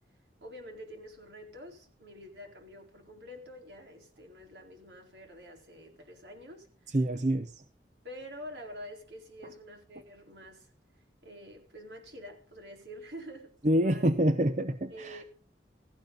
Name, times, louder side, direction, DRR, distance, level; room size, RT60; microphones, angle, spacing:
voice 1, 0.4-7.0 8.0-10.7 11.2-14.1 14.9-15.2, equal, 75° right, 4.4 m, -47 dB
voice 2, 6.9-7.5 13.6-15.2, right 1 dB, 40° right, 0.8 m, -26 dB
16.0 x 15.0 x 4.0 m
head